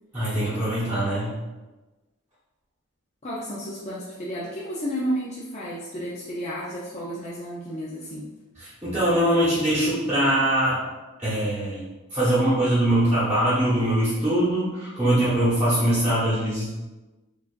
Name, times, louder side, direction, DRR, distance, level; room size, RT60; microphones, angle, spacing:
voice 1, 0.1-1.4 8.6-10.8 11.2-11.8 12.1-16.7, right 1 dB, 10° right, -11 dB, 1.0 m, -22 dB
voice 2, 3.2-8.3, equal, 30° left, -7 dB, 0.4 m, -32 dB
4.7 x 2.5 x 2.5 m, 1.2 s
head